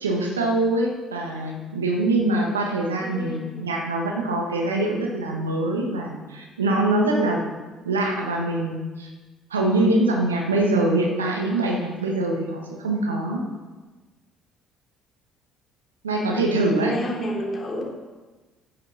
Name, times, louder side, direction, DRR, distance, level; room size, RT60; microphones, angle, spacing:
voice 1, 0.0-7.4 7.8-9.1 9.5-13.4 16.0-16.9, right 2 dB, 90° right, 1 dB, 1.3 m, -23 dB
voice 2, 3.0-3.6 16.2-16.3 16.8-17.8, equal, 35° left, -2 dB, 3.3 m, -31 dB
9.8 x 6.5 x 6.0 m, 1.2 s
hypercardioid pair, 55°, 0 cm